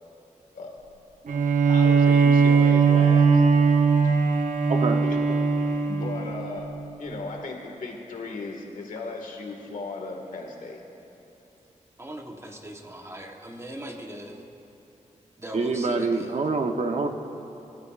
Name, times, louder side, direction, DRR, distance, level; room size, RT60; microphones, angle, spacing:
Bowed string instrument, 1.3-6.7, right 5 dB, 85° right, 0.9 m, -20 dB
voice 1, 1.6-3.4 4.0-4.1 5.0-5.2 5.9-6.7 7.0-10.8, left 3 dB, 90° left, 1 dB, 1.8 m, -36 dB
voice 2, 4.7-5.0 15.5-17.1, right 3 dB, 55° right, 4 dB, 0.9 m, -26 dB
voice 3, 12.0-14.4 15.4-16.3, right 1 dB, 20° right, 2 dB, 1.2 m, -39 dB
25.0 x 13.0 x 2.5 m, 2.9 s
wide cardioid pair, 105°, 13 cm